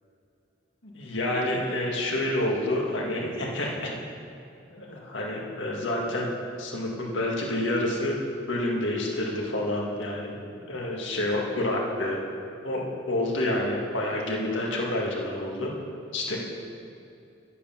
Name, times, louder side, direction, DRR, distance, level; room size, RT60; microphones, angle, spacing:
voice 1, 0.8-3.9 4.7-6.3 6.6-8.2 8.5-12.2 12.6-15.7 16.1-16.4, left 1 dB, 80° left, -2 dB, 2.0 m, -28 dB
11.0 x 8.3 x 5.8 m, 2.6 s
head